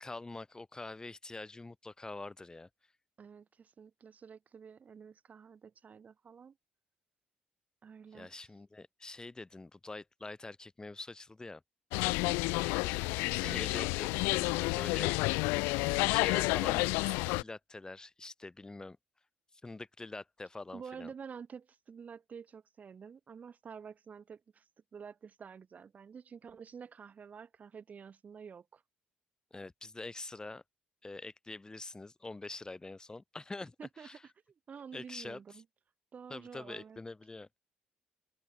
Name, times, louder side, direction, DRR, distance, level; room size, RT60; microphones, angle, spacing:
voice 1, 0.0-2.7 8.1-11.6 13.2-15.2 15.8-19.0 19.6-21.1 29.5-30.6 31.0-34.2 34.9-35.4 36.3-37.5, left 2 dB, 20° left, 2.2 m, -45 dB
voice 2, 3.2-6.6 7.8-8.5 12.3-13.0 13.4-13.8 20.7-28.8 33.8-34.2 34.7-35.7 36.1-37.0, right 6 dB, 45° right, 1.7 m, -49 dB
sound 1, 11.9-17.4, left 27 dB, 85° left, 0.4 m, -30 dB
open air
supercardioid pair, 60°, 4 cm